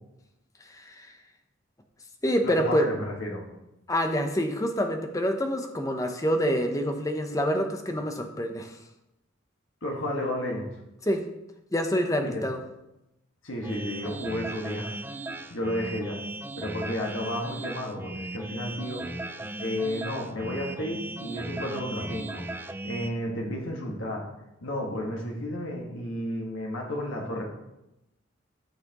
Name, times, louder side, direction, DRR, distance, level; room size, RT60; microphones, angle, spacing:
voice 1, 0.7-1.2 2.2-2.9 3.9-8.8 11.0-11.2 11.7-12.6, equal, 15° left, 5 dB, 0.8 m, -27 dB
voice 2, 2.4-3.4 9.8-10.7 12.2-12.4 13.4-14.9 15.5-16.2 16.6-19.0 19.5-22.4 22.8-24.3 24.6-27.4, left 1 dB, 70° left, -1 dB, 1.7 m, -32 dB
sound 1, 13.6-23.1, right 2 dB, 10° right, 0.4 m, -37 dB
13.0 x 5.8 x 3.0 m, 0.91 s
head